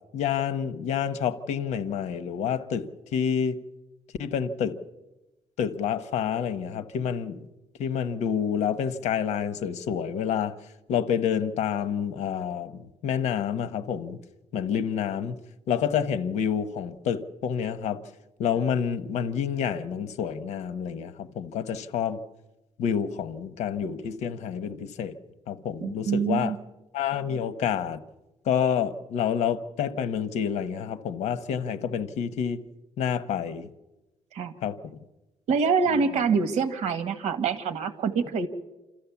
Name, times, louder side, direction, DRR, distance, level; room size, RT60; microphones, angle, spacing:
voice 1, 0.1-3.6 4.2-4.8 5.6-7.5 7.8-10.6 10.9-14.2 14.5-15.4 15.7-18.0 18.4-22.2 22.8-25.1 25.5-26.5 26.9-28.0 28.5-32.6 33.0-33.7 34.6-35.0, left 8 dB, 70° left, 12 dB, 1.1 m, -28 dB
voice 2, 25.8-26.6 34.3-34.5 35.5-38.5, right 5 dB, 70° right, 10 dB, 1.7 m, -25 dB
28.0 x 13.5 x 7.1 m, 1.0 s
cardioid pair, 150°, 12 cm